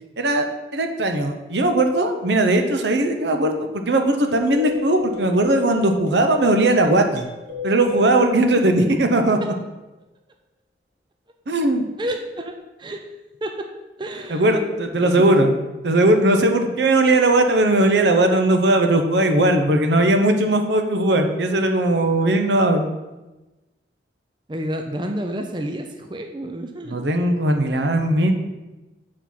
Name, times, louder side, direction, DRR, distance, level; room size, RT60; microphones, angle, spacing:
voice 1, 0.2-0.5 0.7-7.2 7.6-9.4 11.5-11.9 14.3-15.6 15.8-22.8 26.8-28.3, right 1 dB, 80° right, 6 dB, 0.8 m, -18 dB
sound 1, 4.3-9.4, left 5 dB, 45° right, 1.2 m, -33 dB
voice 2, 12.0-12.5 12.8-13.0 13.4-13.7 14.0-15.3 24.5-27.0, right 1 dB, 25° right, 5 dB, 0.5 m, -30 dB
7.2 x 4.3 x 5.8 m, 1.1 s
head